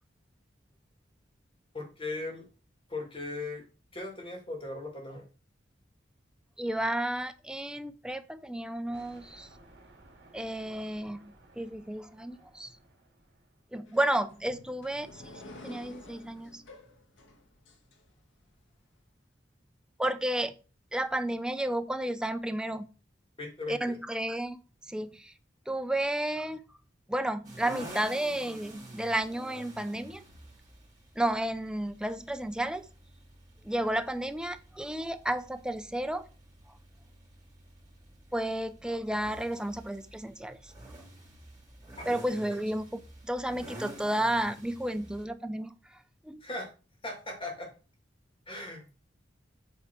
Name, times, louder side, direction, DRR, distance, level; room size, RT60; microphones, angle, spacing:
voice 1, 1.7-2.5 2.9-3.6 3.9-5.3 23.4-24.0 42.0-42.6 46.4-46.7 47.0-47.7 48.5-48.9, left 2 dB, 30° left, 1 dB, 2.2 m, -38 dB
voice 2, 6.6-9.5 10.3-12.7 13.7-15.3 15.6-16.6 20.0-20.5 20.9-22.9 23.7-24.6 24.9-25.3 25.7-26.6 27.1-30.2 31.2-32.9 33.6-36.3 38.3-40.7 42.1-46.0 46.2-46.4, right 1 dB, 5° right, 9 dB, 0.5 m, -32 dB
sound 1, 8.9-13.8, right 2 dB, 65° right, 2.4 m, -58 dB
sound 2, 13.9-18.5, left 1 dB, 85° left, 1.4 m, -51 dB
sound 3, 27.4-45.3, right 1 dB, 20° right, 2.6 m, -50 dB
8.0 x 3.5 x 4.5 m, 0.34 s
head